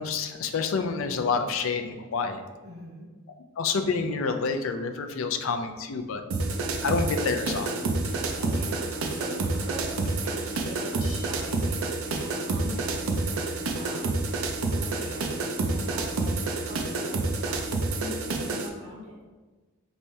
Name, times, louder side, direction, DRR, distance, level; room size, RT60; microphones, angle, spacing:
voice 1, 0.0-2.4 3.6-6.2 6.8-7.7, left 5 dB, 65° left, 7 dB, 0.4 m, -28 dB
voice 2, 2.6-3.0 8.4-10.0 10.2-13.4 13.7-14.1 14.6-15.3 15.7-16.3 16.6-17.6 17.9-19.2, equal, 35° right, -7 dB, 1.5 m, -42 dB
sound 1, 6.3-18.7, right 3 dB, 85° right, 0.5 m, -29 dB
sound 2, 8.0-11.7, left 2 dB, 90° left, 1.0 m, -48 dB
3.2 x 2.6 x 4.4 m, 1.3 s
head